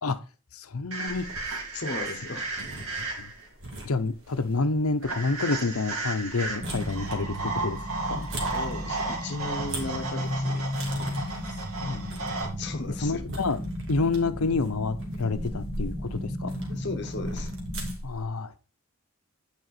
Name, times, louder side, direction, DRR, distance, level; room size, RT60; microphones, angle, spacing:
voice 1, 0.5-1.3 3.2-3.3 3.8-7.8 8.1-8.3 11.1-11.3 11.8-12.2 13.0-13.6 13.9-16.5 18.0-18.5, left 3 dB, 85° left, 11 dB, 0.8 m, -28 dB
sound 1, 0.9-3.5 5.0-12.5, right 3 dB, 85° right, 2.9 m, -34 dB
sound 2, 1.1-18.2, right 1 dB, 60° right, 2.4 m, -42 dB
voice 2, 1.7-2.5 8.4-10.6 12.6-13.3 16.7-17.5, left 3 dB, 50° left, 5 dB, 1.0 m, -35 dB
sound 3, 6.6-17.9, left 1 dB, 35° right, 2.5 m, -34 dB
9.5 x 5.1 x 4.2 m, 0.34 s
head